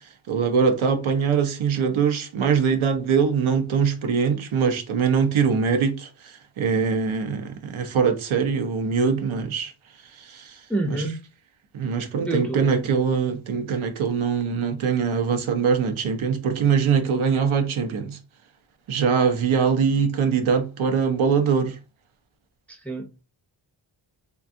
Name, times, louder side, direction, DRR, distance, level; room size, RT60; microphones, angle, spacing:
voice 1, 0.3-9.7 10.2-10.6 10.9-11.0 11.7-18.2 18.9-21.8, right 6 dB, 75° right, 0.6 m, -22 dB
voice 2, 10.7-11.2 12.2-12.9 22.7-23.1, right 2 dB, 5° left, 0.4 m, -28 dB
3.5 x 2.2 x 2.5 m
wide cardioid pair, 105°, 48 cm